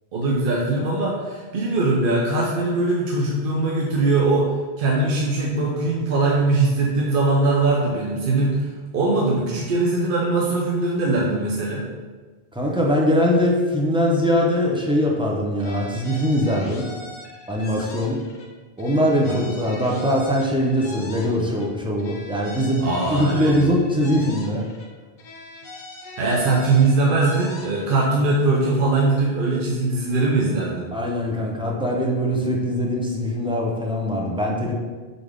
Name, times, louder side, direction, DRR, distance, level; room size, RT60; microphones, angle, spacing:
voice 1, 0.1-4.5 4.8-8.7 8.9-11.8 19.3-19.4 22.8-23.5 26.2-30.9, right 2 dB, 60° right, -3 dB, 0.8 m, -21 dB
voice 2, 12.5-16.9 17.5-18.2 18.8-24.6 30.9-34.7, equal, 10° right, -2 dB, 0.3 m, -22 dB
sound 1, 15.6-18.5 18.8-21.7 22.0-24.9 25.2-28.1, left 2 dB, 55° left, 0.7 m, -40 dB
3.9 x 3.4 x 3.6 m, 1.4 s
omnidirectional pair, 1.1 m